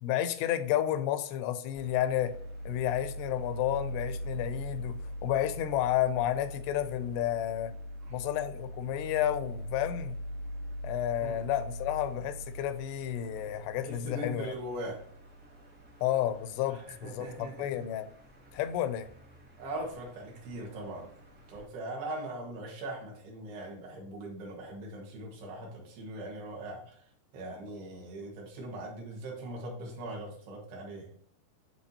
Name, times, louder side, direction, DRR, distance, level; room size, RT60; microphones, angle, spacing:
voice 1, 0.0-2.3 2.7-7.7 8.1-10.2 10.8-14.5 16.0-18.1 18.5-19.1, left 12 dB, 90° left, 11 dB, 2.7 m, -31 dB
sound 1, 1.7-21.6, equal, 55° right, 0.8 m, -42 dB
voice 2, 13.8-15.0 16.7-17.8 19.6-21.1 21.5-27.0 27.3-31.1, right 1 dB, 75° right, -1 dB, 3.6 m, -40 dB
10.0 x 4.0 x 2.8 m, 0.63 s
omnidirectional pair, 4.7 m